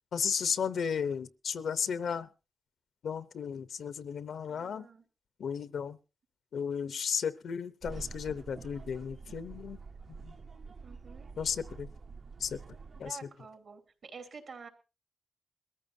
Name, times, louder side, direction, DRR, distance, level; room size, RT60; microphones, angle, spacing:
voice 1, 0.1-2.3 3.0-4.9 5.4-6.0 6.5-9.8 10.1-10.3 11.4-11.9 12.4-12.6 13.0-13.2, left 7 dB, 90° left, 16 dB, 0.7 m, -34 dB
voice 2, 4.5-5.0 10.8-11.3 13.0-14.7, right 5 dB, 75° right, 5 dB, 2.9 m, -48 dB
sound 1, 7.8-13.1, right 4 dB, 60° right, 0.6 m, -47 dB
22.0 x 14.0 x 2.7 m, 0.30 s
cardioid pair, 90°, 0 cm